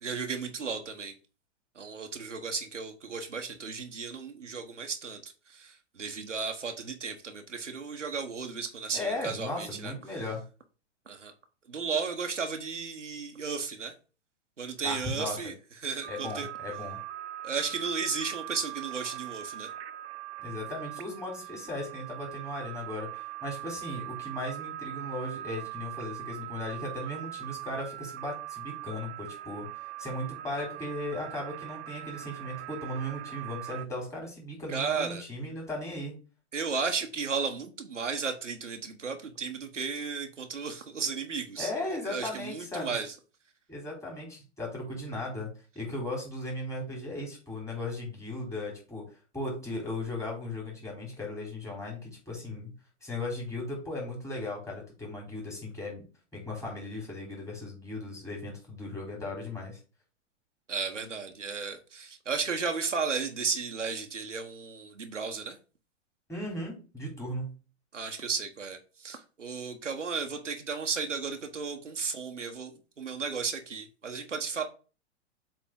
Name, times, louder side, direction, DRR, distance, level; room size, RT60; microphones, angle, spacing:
voice 1, 0.0-1.1 1.7-9.9 11.1-11.3 11.7-13.9 14.6-15.5 15.8-16.5 17.4-19.7 34.7-35.2 36.5-41.7 42.1-43.1 60.7-65.6 67.9-74.6, right 5 dB, 90° right, 4 dB, 1.4 m, -34 dB
voice 2, 8.9-10.4 14.8-15.4 16.1-17.0 20.4-29.7 30.0-36.1 41.6-43.0 43.7-45.5 45.8-49.0 49.3-52.7 53.0-56.0 56.3-59.8 66.3-67.6, left 2 dB, 10° left, -2 dB, 3.9 m, -37 dB
sound 1, 16.0-33.9, right 15 dB, 60° right, 0.7 m, -41 dB
7.4 x 4.0 x 3.8 m, 0.34 s
hypercardioid pair, 110°, 36 cm